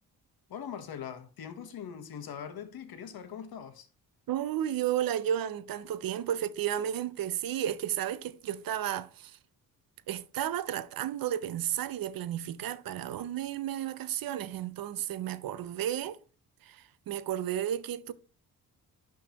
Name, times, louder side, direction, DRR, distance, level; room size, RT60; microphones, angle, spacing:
voice 1, 0.5-3.9, left 8 dB, 70° left, 1.1 m, -41 dB
voice 2, 4.3-9.4 10.1-16.2 16.6-18.1, right 11 dB, 65° right, 0.5 m, -33 dB
11.0 x 3.7 x 2.9 m
cardioid pair, 100°, 38 cm